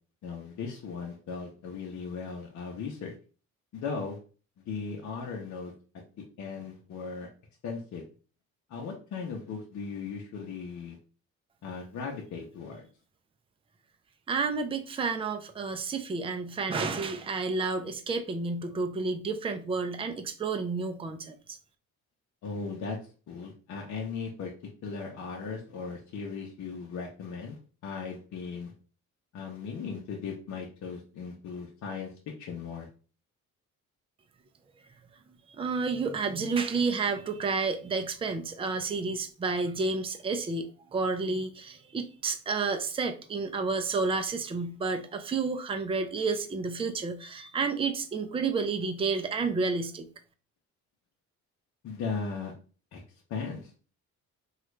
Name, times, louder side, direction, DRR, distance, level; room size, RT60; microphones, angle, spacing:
voice 1, 0.2-3.1 3.7-4.2 4.7-5.7 6.4-7.3 7.6-8.0 8.7-11.0 11.6-12.9 22.4-23.0 23.3-24.5 24.8-28.7 29.3-32.1 32.4-32.9 51.8-52.5 52.9-53.0 53.3-53.7, left 5 dB, 70° left, 0.8 m, -37 dB
voice 2, 14.3-21.6 35.6-50.1, right 4 dB, 20° right, 0.4 m, -30 dB
3.1 x 2.4 x 3.1 m
cardioid pair, 90°, 30 cm